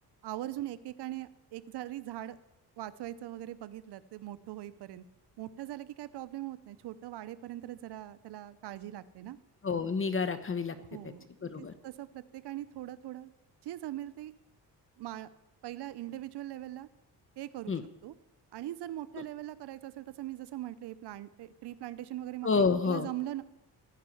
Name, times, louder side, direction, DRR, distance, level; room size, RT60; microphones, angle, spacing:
voice 1, 0.2-2.4 2.8-5.0 5.4-9.4 10.9-11.3 11.6-13.3 13.6-14.3 15.0-15.3 15.6-16.9 17.4-17.7 18.0-18.1 18.5-23.4, right 14 dB, 80° right, 15 dB, 0.8 m, -41 dB
voice 2, 9.6-10.8 11.4-11.7 17.7-17.8 22.4-23.1, left 5 dB, 30° left, 11 dB, 1.0 m, -29 dB
15.5 x 5.6 x 9.8 m, 0.92 s
cardioid pair, 95°, 40 cm